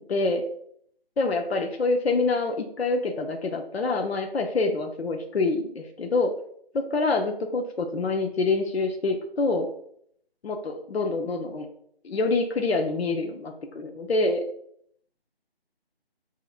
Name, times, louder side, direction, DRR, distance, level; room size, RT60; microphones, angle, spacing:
voice 1, 0.1-0.4 1.2-6.3 6.7-9.7 10.4-11.7 12.0-14.4, left 3 dB, 80° left, 4 dB, 0.6 m, -26 dB
4.9 x 2.8 x 2.4 m, 0.68 s
figure-of-eight pair, 180°, 31 cm